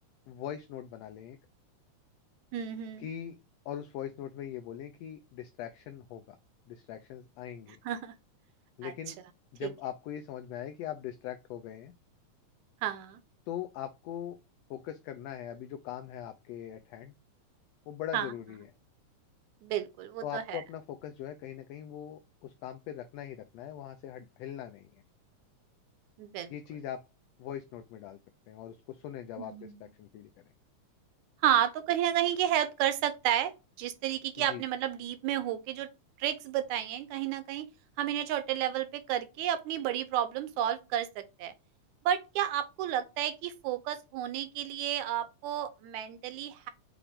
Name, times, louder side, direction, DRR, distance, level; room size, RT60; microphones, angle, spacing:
voice 1, 0.3-1.4 3.0-3.4 3.6-6.4 6.7-7.8 8.8-9.2 9.5-11.9 13.5-14.4 14.7-17.1 17.9-18.7 20.2-25.0 26.5-27.0 27.4-28.2 28.5-30.3 34.4-34.6, left 10 dB, 85° left, 1.4 m, -41 dB
voice 2, 2.5-3.1 7.9-8.2 8.8-8.9 9.6-9.7 12.8-13.2 18.1-18.3 19.6-20.6 26.2-26.5 29.4-29.8 31.4-33.5 33.8-35.9 36.2-37.7 38.0-41.5 42.1-46.7, right 11 dB, 80° right, 2.0 m, -31 dB
5.8 x 2.5 x 3.4 m
omnidirectional pair, 3.4 m